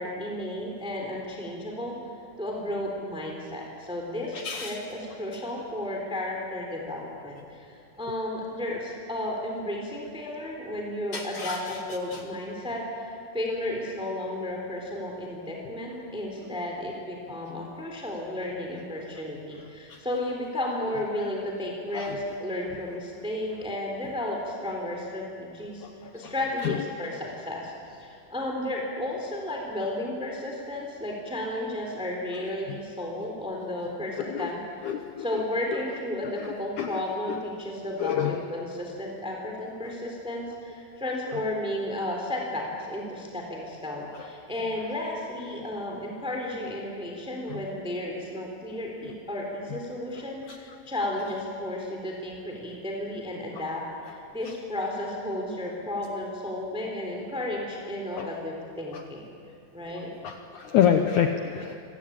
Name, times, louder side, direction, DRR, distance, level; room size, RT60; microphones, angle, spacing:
voice 1, 0.0-2.0 2.4-25.8 26.1-34.6 35.2-59.3 59.7-60.1, left 1 dB, ahead, 0 dB, 3.1 m, -33 dB
voice 2, 4.3-4.8 11.1-11.8 12.1-12.2 16.5-16.6 17.3-17.6 19.6-20.0 21.9-22.2 25.8-26.3 26.6-26.9 32.7-32.8 34.2-34.5 34.8-35.4 36.2-37.0 37.3-37.4 38.0-38.4 44.1-44.3 47.5-47.6 49.0-49.1 50.5-50.6 58.1-58.3 58.9-59.0 60.2-61.8, left 9 dB, 70° left, 5 dB, 2.1 m, -29 dB
26.0 x 19.5 x 8.7 m, 2.5 s
omnidirectional pair, 4.2 m